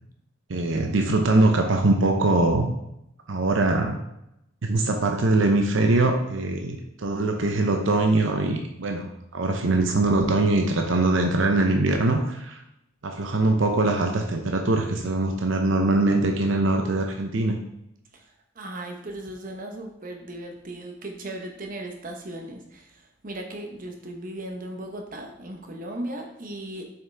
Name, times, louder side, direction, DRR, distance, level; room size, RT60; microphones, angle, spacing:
voice 1, 0.5-2.7 3.3-4.0 4.6-12.6 13.0-17.6, right 2 dB, 80° right, 3 dB, 0.7 m, -22 dB
voice 2, 18.6-22.9 23.2-26.8, right 1 dB, 45° right, 3 dB, 1.1 m, -37 dB
7.3 x 5.8 x 3.4 m, 0.82 s
head